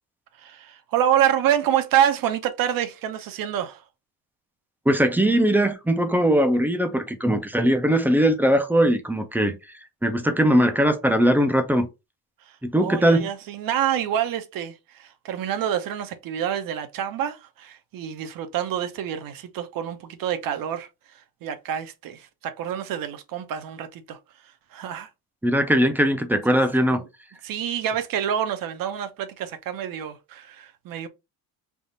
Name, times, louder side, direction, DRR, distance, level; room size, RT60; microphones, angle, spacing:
voice 1, 0.3-3.8 12.4-25.1 26.9-27.1 27.4-31.1, right 10 dB, 60° right, 0.7 m, -27 dB
voice 2, 4.9-9.6 10.0-11.9 12.6-13.3 25.4-27.0, equal, 5° right, 0.4 m, -20 dB
3.5 x 2.4 x 4.0 m
cardioid pair, 155°, 38 cm